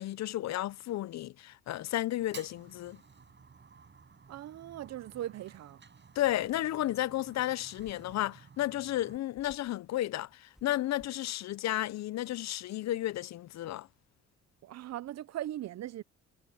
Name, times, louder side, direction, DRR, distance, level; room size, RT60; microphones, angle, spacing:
voice 1, 0.0-3.0 6.2-13.9, left 14 dB, 65° left, 0.6 m, -33 dB
Fire, 2.2-9.2, right 5 dB, 40° right, 5.9 m, -54 dB
voice 2, 4.3-5.8 14.6-16.0, right 13 dB, 60° right, 0.6 m, -39 dB
sound 1, 7.8-8.2 9.3-9.8 10.5-11.3, equal, ahead, 3.4 m, -61 dB
cardioid pair, 90°, 30 cm